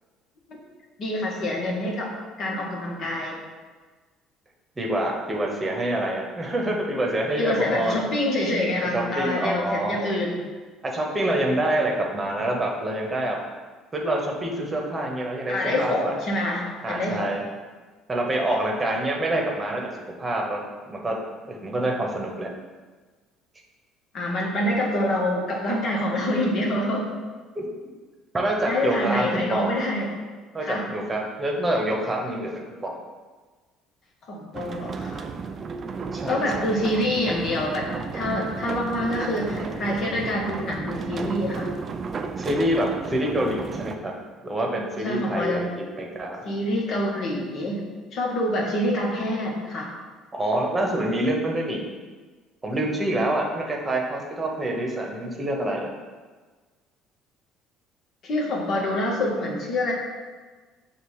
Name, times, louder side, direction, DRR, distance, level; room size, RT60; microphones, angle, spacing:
voice 1, 1.0-2.1 2.4-3.4 7.4-10.4 15.5-17.4 24.1-27.1 28.7-30.1 30.6-30.9 34.3-35.3 36.3-41.7 45.0-45.7 46.4-47.8 48.1-49.9 58.2-59.9, left 1 dB, 55° left, -1 dB, 1.1 m, -26 dB
voice 2, 4.8-8.1 8.9-10.0 10.8-13.4 13.9-16.1 16.8-17.4 18.1-19.9 20.2-21.2 21.5-22.5 27.5-27.6 28.3-29.7 30.5-32.9 36.1-36.4 42.4-44.1 44.4-45.7 46.0-46.4 50.3-51.8 52.6-55.9, right 1 dB, 25° right, 0 dB, 1.0 m, -26 dB
sound 1, 34.5-44.0, right 5 dB, 40° right, 0.4 m, -33 dB
6.6 x 2.5 x 3.2 m, 1.4 s
hypercardioid pair, 65°, 0 cm